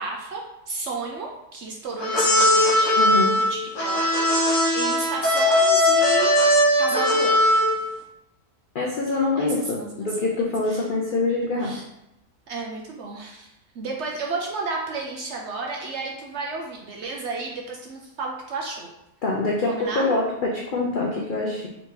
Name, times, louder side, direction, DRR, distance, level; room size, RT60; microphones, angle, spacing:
voice 1, 0.0-3.0 3.4-6.3 6.8-7.6 9.4-10.1 10.7-10.9 11.6-11.8 12.5-13.5 13.7-18.9 19.6-20.2, right 3 dB, 65° right, 0 dB, 0.7 m, -32 dB
sound 1, 2.0-7.9, left 1 dB, 60° left, 1.3 m, -19 dB
voice 2, 3.0-3.3 8.7-11.7 19.2-21.7, left 2 dB, 80° left, -1 dB, 0.4 m, -25 dB
4.0 x 2.8 x 3.6 m, 0.87 s
omnidirectional pair, 1.6 m